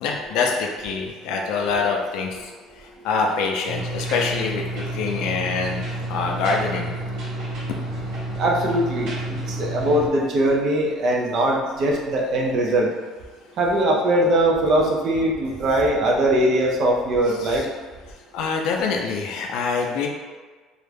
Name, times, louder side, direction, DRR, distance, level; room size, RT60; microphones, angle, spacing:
voice 1, 0.0-2.4 3.0-5.8 6.1-6.9 9.6-9.7 17.3-17.7 18.3-20.1, left 4 dB, 65° left, 1 dB, 0.4 m, -25 dB
sound 1, 3.7-10.1, right 1 dB, 65° right, 0.9 m, -30 dB
voice 2, 8.4-12.9 13.6-17.6, right 1 dB, 40° right, -1 dB, 0.4 m, -21 dB
2.4 x 2.1 x 3.2 m, 1.4 s
cardioid pair, 170°, 0 cm